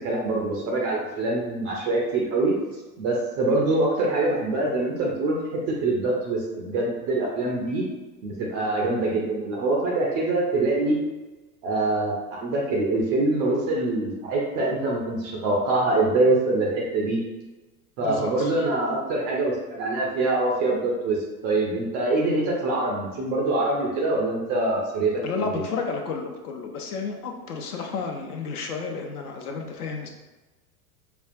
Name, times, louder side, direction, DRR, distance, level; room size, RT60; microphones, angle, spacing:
voice 1, 0.0-2.5 3.0-7.8 8.2-11.0 11.6-17.2 18.0-25.6, right 2 dB, 20° right, -2 dB, 0.3 m, -24 dB
voice 2, 18.0-18.5 25.2-30.1, left 4 dB, 65° left, 2 dB, 0.7 m, -31 dB
5.1 x 2.3 x 2.5 m, 1.2 s
figure-of-eight pair, 85°, 48 cm